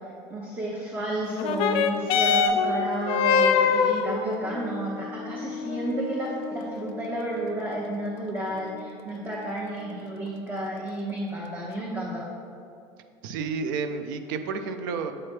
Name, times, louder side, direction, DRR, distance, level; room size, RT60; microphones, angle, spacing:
voice 1, 0.3-12.3, right 1 dB, 20° right, -4 dB, 0.8 m, -31 dB
sound 1, 1.3-10.3 11.1-11.2, left 6 dB, 65° left, 0.5 m, -27 dB
voice 2, 13.2-15.1, right 5 dB, 90° right, 8 dB, 0.4 m, -30 dB
7.5 x 3.2 x 4.4 m, 2.5 s
supercardioid pair, 105°, 10 cm